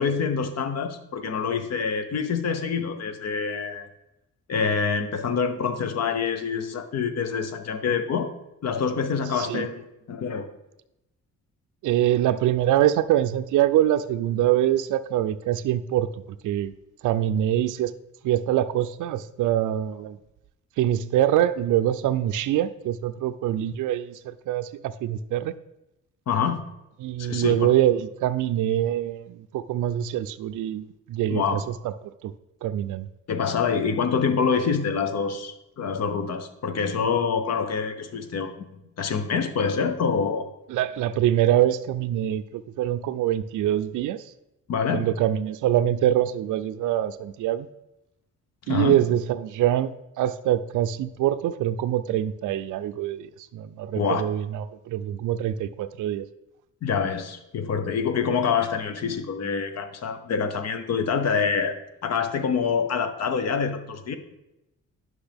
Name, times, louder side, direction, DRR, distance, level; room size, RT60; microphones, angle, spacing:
voice 1, 0.0-3.9 4.5-8.3 8.6-10.5 26.3-26.6 27.2-27.7 31.3-31.6 33.3-40.5 44.7-45.1 48.7-49.0 54.0-54.2 56.8-61.8 62.0-64.2, left 6 dB, 55° left, 9 dB, 0.9 m, -26 dB
voice 2, 9.4-9.7 11.8-16.1 16.4-16.7 17.0-17.9 18.2-20.2 20.8-25.5 27.0-31.6 32.2-32.3 32.6-33.1 40.7-44.2 44.9-47.7 48.7-49.9 50.2-56.3, right 12 dB, 75° right, 11 dB, 0.5 m, -24 dB
9.9 x 6.1 x 3.4 m, 0.91 s
cardioid pair, 115°, 31 cm